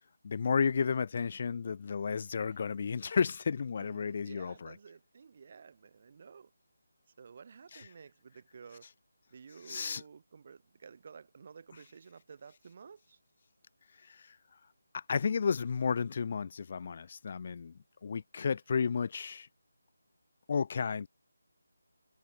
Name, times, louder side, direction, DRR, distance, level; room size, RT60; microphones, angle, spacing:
voice 1, 0.2-4.7 9.7-10.0 14.0-14.4 14.9-17.7 18.0-19.5 20.5-21.1, left 6 dB, 40° left, 0.4 m, -32 dB
voice 2, 2.3-2.7 3.8-6.5 7.2-8.9 9.3-13.2, right 6 dB, 40° right, 1.7 m, -53 dB
figure-of-eight pair, 155°, 0 cm